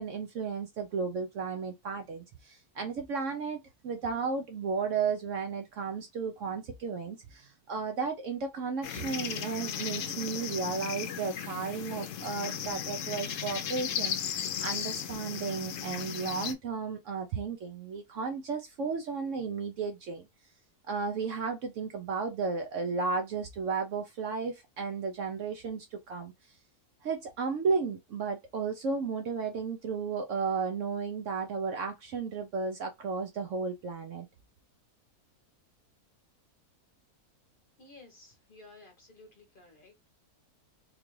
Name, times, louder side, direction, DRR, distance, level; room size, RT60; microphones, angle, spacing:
voice 1, 0.0-20.2 20.9-26.3 27.0-34.3, right 5 dB, 65° right, 0.8 m, -34 dB
sound 1, 8.8-16.5, left 9 dB, 65° left, 0.8 m, -36 dB
voice 2, 37.8-40.1, left 2 dB, 40° left, 0.9 m, -55 dB
3.7 x 2.4 x 3.0 m
omnidirectional pair, 1.6 m